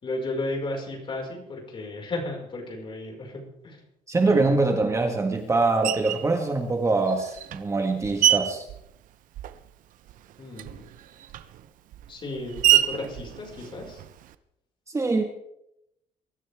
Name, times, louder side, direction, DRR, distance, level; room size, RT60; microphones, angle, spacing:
voice 1, 0.0-3.8 4.2-4.6 10.4-10.9 12.1-14.0, left 2 dB, 35° left, 0 dB, 5.3 m, -34 dB
voice 2, 4.1-8.6 14.9-15.2, right 3 dB, 20° right, 4 dB, 1.6 m, -24 dB
Screech, 5.8-6.3 7.1-9.8 10.1-14.4, right 12 dB, 70° right, 0.9 m, -27 dB
23.0 x 13.5 x 3.6 m, 0.80 s
cardioid pair, 130°, 14 cm